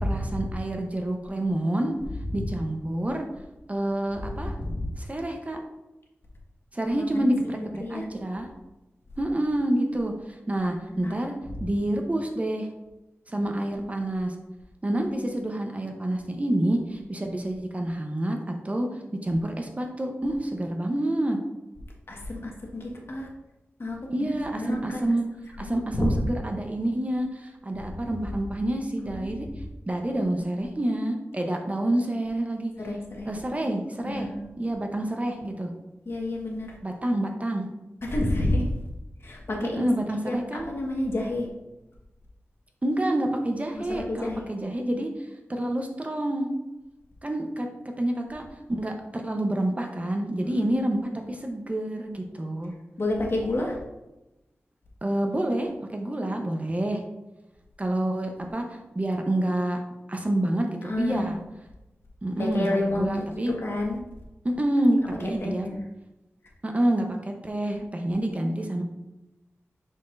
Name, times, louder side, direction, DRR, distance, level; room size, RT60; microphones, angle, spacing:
voice 1, 0.0-2.0 2.3-3.2 3.7-4.6 5.0-5.6 6.7-8.5 9.2-10.1 10.5-11.3 11.6-12.7 13.3-14.4 14.8-18.9 19.2-21.4 24.1-25.3 25.6-29.5 29.9-32.7 33.2-34.3 34.6-35.7 36.8-37.7 39.6-40.7 42.8-45.1 45.5-46.5 47.2-47.7 48.0-52.7 55.0-57.0 57.8-59.8 60.1-61.4 62.2-63.5 64.4-65.7 66.6-68.8, right 1 dB, 30° right, 3 dB, 0.8 m, -28 dB
voice 2, 4.3-4.8 7.0-7.3 7.8-8.1 10.9-11.1 22.1-23.3 23.8-24.0 24.5-25.0 25.6-26.1 29.1-29.3 32.8-33.3 34.0-34.5 36.0-36.7 38.0-38.6 39.2-39.9 40.2-40.4 40.7-41.5 43.7-44.4 50.6-50.7 53.0-53.8 60.8-61.3 62.4-63.3 63.6-64.0 65.4-65.8, left 1 dB, 55° left, -1 dB, 1.4 m, -29 dB
6.4 x 5.8 x 2.5 m, 0.98 s
wide cardioid pair, 85°, 5 cm